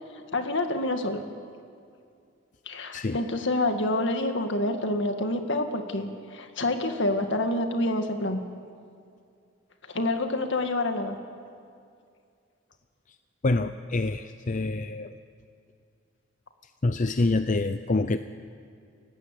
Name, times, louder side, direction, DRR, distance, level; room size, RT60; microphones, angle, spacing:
voice 1, 0.3-1.2 2.7-8.4 9.9-11.2, left 2 dB, 65° left, 6 dB, 1.9 m, -27 dB
voice 2, 13.4-15.2 16.8-18.2, left 2 dB, 40° left, 10 dB, 0.6 m, -26 dB
29.0 x 15.5 x 8.4 m, 2.4 s
head